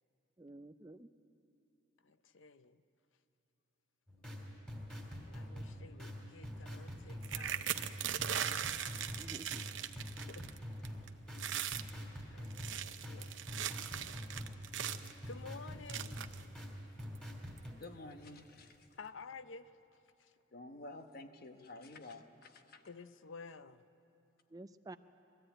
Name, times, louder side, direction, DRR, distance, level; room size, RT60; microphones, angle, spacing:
voice 1, 0.4-1.1 9.2-9.8 24.5-25.0, right 2 dB, 20° right, 0.5 m, -51 dB
voice 2, 2.0-2.8 5.3-7.9 10.3-10.5 10.8-11.0 11.3-11.4 12.3-13.4 15.3-16.2 18.9-19.7 20.2-20.3 22.9-23.8, left 4 dB, 80° left, 0.6 m, -52 dB
sound 1, 4.1-17.7, equal, 5° left, 2.9 m, -46 dB
sound 2, 7.2-10.6 10.9-11.1 11.4-11.9 12.4-15.1 15.9-16.4 17.2-17.3 17.6-17.8, right 10 dB, 75° right, 0.7 m, -39 dB
voice 3, 17.8-18.9 20.5-22.8, left 2 dB, 50° left, 1.1 m, -51 dB
21.0 x 14.0 x 8.9 m
head